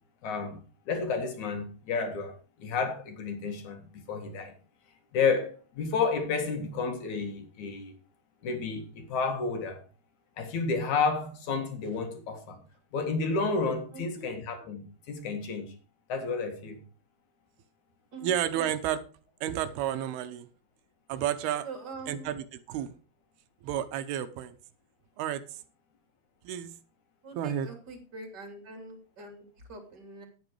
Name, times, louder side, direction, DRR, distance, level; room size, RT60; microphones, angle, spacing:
voice 1, 0.2-0.6 0.9-2.3 2.6-4.5 5.1-7.9 8.4-9.8 10.4-12.6 12.9-15.7 16.1-16.8, left 4 dB, 55° left, 3.0 m, -31 dB
voice 2, 13.9-14.3 18.1-18.7 21.6-22.3 27.2-29.4 29.7-30.2, right 3 dB, 30° right, 3.1 m, -44 dB
voice 3, 18.2-19.0 19.4-20.5 21.1-21.7 22.1-22.9 23.6-24.6 25.2-25.6 26.4-26.7 27.4-27.7, right 10 dB, 80° right, 2.8 m, -31 dB
11.0 x 9.3 x 4.7 m
omnidirectional pair, 4.5 m